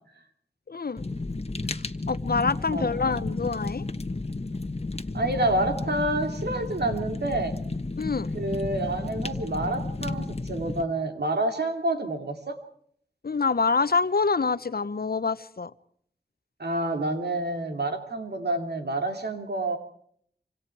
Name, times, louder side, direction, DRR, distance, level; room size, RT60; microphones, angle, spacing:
voice 1, 0.7-1.0 1.7-3.9 8.0-8.3 13.2-15.7, left 4 dB, 65° left, 15 dB, 0.9 m, -26 dB
Fire, 1.0-10.8, left 2 dB, 40° left, 1.3 m, -32 dB
voice 2, 2.7-3.1 5.1-7.6 8.3-12.6 16.6-19.8, right 2 dB, 90° right, 5 dB, 2.9 m, -28 dB
27.5 x 25.5 x 4.7 m, 0.63 s
wide cardioid pair, 65°, 17 cm